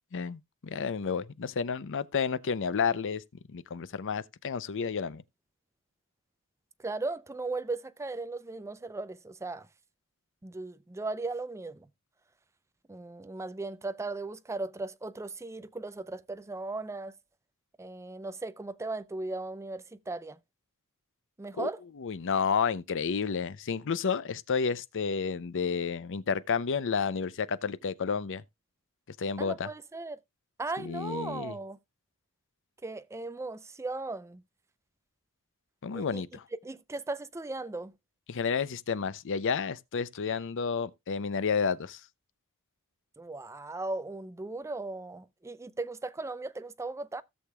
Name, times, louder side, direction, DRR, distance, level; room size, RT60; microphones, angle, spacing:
voice 1, 0.1-3.2 3.5-5.2 21.6-21.7 22.0-28.4 29.2-29.7 30.8-31.6 35.8-36.4 38.3-42.0, left 6 dB, 60° left, 0.6 m, -31 dB
voice 2, 6.8-9.7 10.4-11.9 12.9-17.1 17.8-20.4 21.4-21.8 29.4-30.2 30.6-31.8 32.8-34.4 35.9-36.2 36.6-37.9 43.2-47.2, right 3 dB, 15° right, 0.4 m, -37 dB
16.5 x 6.5 x 2.3 m
head